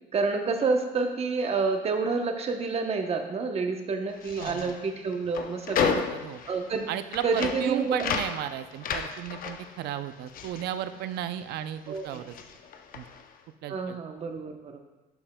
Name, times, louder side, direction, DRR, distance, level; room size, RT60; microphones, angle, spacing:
voice 1, 0.1-6.0 6.5-6.9 7.2-8.0 11.9-12.2 13.7-14.8, right 4 dB, 40° right, 5 dB, 0.9 m, -28 dB
sound 1, 4.1-11.6 11.9-13.3, left 7 dB, 55° left, 0.6 m, -33 dB
voice 2, 4.4-4.7 5.8-6.4 6.9-12.3 12.9-13.1 13.6-14.0, right 11 dB, 75° right, 12 dB, 0.5 m, -34 dB
11.5 x 5.4 x 2.2 m, 1.2 s
cardioid pair, 110°, 17 cm